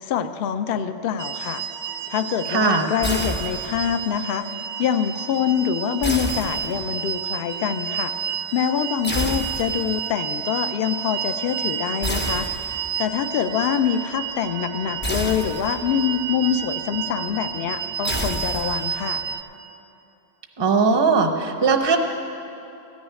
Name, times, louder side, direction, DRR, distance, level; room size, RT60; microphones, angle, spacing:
voice 1, 0.0-1.6 2.1-4.5 4.8-8.1 8.5-12.5 13.0-19.2, left 8 dB, 60° left, 10 dB, 0.6 m, -25 dB
sound 1, 1.2-19.4, right 8 dB, 70° right, 0.4 m, -31 dB
voice 2, 2.5-2.9 20.6-22.0, right 4 dB, 25° right, 5 dB, 0.6 m, -19 dB
sound 2, 3.0-4.0 6.0-7.1 9.0-10.0 12.0-13.0 15.0-16.0 18.0-19.0, equal, 15° left, 0.3 m, -29 dB
14.0 x 6.3 x 9.5 m, 2.8 s
omnidirectional pair, 1.3 m